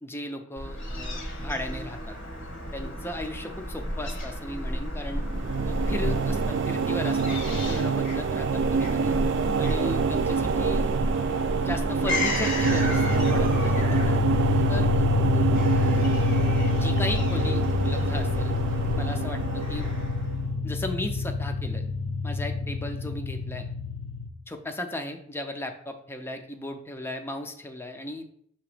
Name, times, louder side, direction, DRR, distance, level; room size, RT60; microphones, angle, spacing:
voice 1, 0.0-2.2 2.7-5.2 5.6-9.1 9.6-10.9 11.6-14.1 14.7-14.9 16.7-18.5 19.0-19.9 20.6-21.9 22.2-23.7 24.5-28.3, left 1 dB, 10° left, 5 dB, 0.6 m, -36 dB
Fowl / Gull seagull, 0.6-20.4, equal, 60° left, 1.4 m, -33 dB
sound 1, 5.1-20.4, right 5 dB, 60° right, 0.4 m, -27 dB
sound 2, 12.6-24.3, left 3 dB, 90° left, 0.6 m, -27 dB
6.8 x 2.9 x 4.9 m, 0.66 s
head